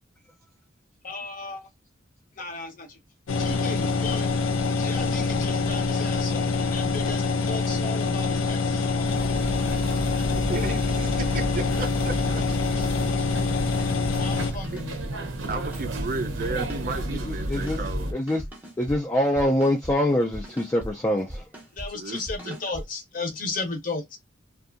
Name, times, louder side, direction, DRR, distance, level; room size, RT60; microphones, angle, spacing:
voice 1, 1.0-1.6 2.4-3.0 3.4-4.4 4.8-9.5 14.2-15.3 21.7-24.2, left 3 dB, 45° left, 0.7 m, -35 dB
sound 1, 3.3-14.5, left 4 dB, 80° left, 0.4 m, -25 dB
sound 2, 9.1-18.1, right 1 dB, 80° right, 0.7 m, -32 dB
voice 2, 10.3-12.9 13.2-13.3 14.7-14.9 15.5-18.1 21.9-22.2 22.4-22.6, right 3 dB, 45° right, 0.5 m, -34 dB
sound 3, 13.8-14.1 14.4-15.1 15.4-16.1 16.4-17.0 17.4-18.0 18.3-19.0 19.4-19.9 20.3-20.9 21.2-21.9 22.1-22.8, equal, 10° right, 0.7 m, -38 dB
voice 3, 17.3-17.8 18.1-18.4 18.8-21.4, left 1 dB, 15° left, 0.3 m, -24 dB
2.6 x 2.3 x 2.5 m
head